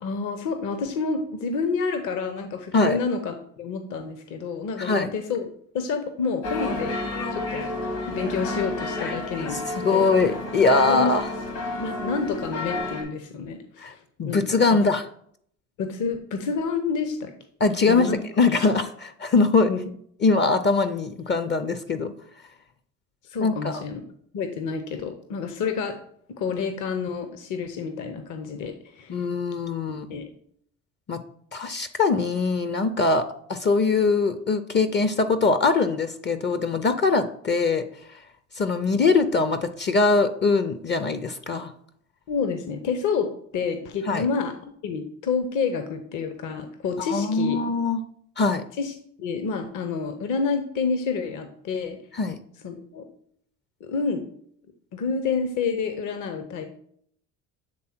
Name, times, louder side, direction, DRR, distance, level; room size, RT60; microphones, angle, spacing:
voice 1, 0.0-5.5 5.7-7.7 8.1-9.6 9.9-10.1 10.9-11.1 11.8-14.8 15.8-17.3 17.9-18.2 19.7-19.8 23.3-24.0 24.3-26.0 26.4-29.3 30.1-30.3 42.3-43.3 43.5-44.5 44.8-47.6 48.8-48.9 49.2-52.0 52.6-53.0 53.8-54.2 54.9-56.6, left 5 dB, 50° left, 7 dB, 0.8 m, -29 dB
voice 2, 4.8-5.1 9.0-11.2 13.8-13.9 14.2-15.0 17.6-18.1 18.4-19.7 20.2-22.1 23.4-23.8 29.1-30.2 31.1-31.2 31.5-37.8 38.6-41.7 44.1-44.3 47.1-48.0 48.4-48.6 52.1-52.4, left 4 dB, 30° left, 11 dB, 0.5 m, -22 dB
sound 1, 6.4-13.0, left 2 dB, 65° left, 2.0 m, -30 dB
7.7 x 3.5 x 4.4 m, 0.65 s
hypercardioid pair, 70°, 39 cm